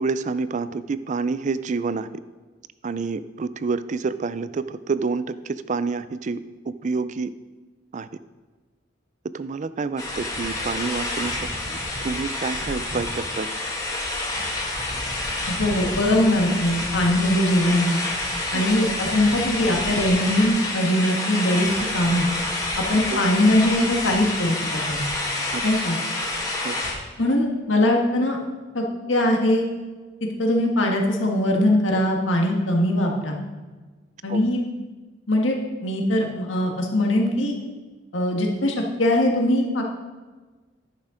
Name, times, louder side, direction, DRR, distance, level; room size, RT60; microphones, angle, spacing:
voice 1, 0.0-2.1 2.8-6.4 6.7-7.3 7.9-8.1 9.3-11.4 11.7-13.5 18.5-18.6 23.1-23.2 25.5-25.6 26.6-26.8 34.3-34.4, right 4 dB, 40° right, 14 dB, 0.4 m, -28 dB
sound 1, 10.0-26.9, left 2 dB, 20° left, 1.6 m, -28 dB
voice 2, 15.5-18.0 18.5-22.3 22.9-24.6 24.9-25.0 25.6-26.0 27.2-28.4 28.7-29.7 30.4-33.4 34.2-34.6 35.3-35.6 35.8-37.5 38.1-39.8, left 1 dB, 90° left, 1 dB, 1.6 m, -21 dB
10.5 x 6.6 x 5.0 m, 1.3 s
head